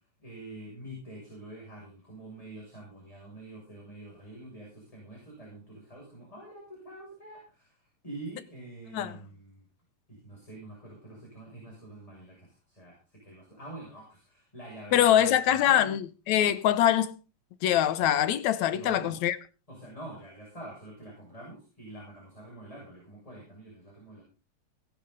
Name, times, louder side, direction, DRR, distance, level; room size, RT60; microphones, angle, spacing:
voice 1, 0.2-9.6 10.1-15.9 18.7-19.2 19.7-24.2, right 1 dB, 10° left, 7.1 m, -46 dB
voice 2, 14.9-17.2 17.6-19.4, left 11 dB, 75° left, 2.2 m, -24 dB
19.5 x 11.0 x 4.0 m
omnidirectional pair, 3.3 m